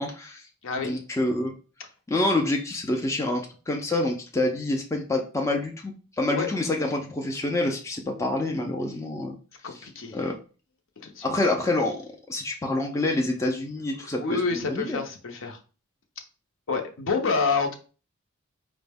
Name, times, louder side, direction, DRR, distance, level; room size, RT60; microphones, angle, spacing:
voice 1, 0.0-0.4 0.8-1.5 2.1-9.3 9.6-10.3 11.2-15.0, left 2 dB, 15° left, 0.4 m, -27 dB
voice 2, 9.6-10.3 11.0-11.3 14.2-15.6 16.7-17.7, left 4 dB, 60° left, 0.7 m, -28 dB
4.9 x 2.1 x 3.4 m
head